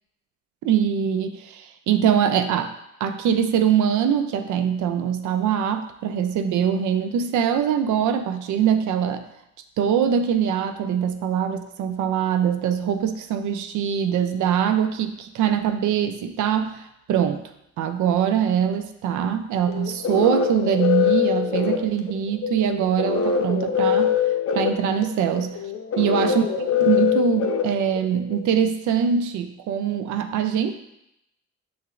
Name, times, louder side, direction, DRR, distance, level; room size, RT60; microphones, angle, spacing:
voice 1, 0.6-2.7 3.0-9.3 9.8-17.4 17.8-24.2 24.5-25.6 26.0-30.7, right 8 dB, 75° right, 9 dB, 0.5 m, -23 dB
sound 1, 19.7-28.4, left 8 dB, 50° left, 0.6 m, -23 dB
6.9 x 2.9 x 2.4 m, 0.82 s
cardioid pair, 90°, 30 cm